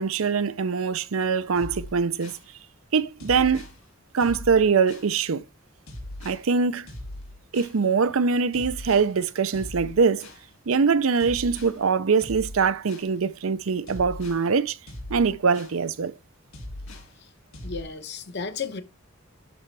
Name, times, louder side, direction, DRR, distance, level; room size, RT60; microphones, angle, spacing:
voice 1, 0.0-2.3 2.9-3.7 4.1-5.4 6.2-6.9 7.5-10.3 10.7-14.8 15.1-16.1, right 5 dB, 90° right, 0.6 m, -23 dB
sound 1, 1.5-2.4 3.2-3.8 4.2-5.1 5.9-6.4 6.9-7.8 8.5-9.1 9.5-10.5 11.2-11.8 12.2-13.1 13.9-14.4 14.9-15.8 16.5-17.1 17.5-17.8, left 1 dB, 85° left, 2.8 m, -40 dB
voice 2, 17.6-18.8, left 5 dB, 55° left, 1.0 m, -33 dB
11.0 x 4.3 x 3.4 m
head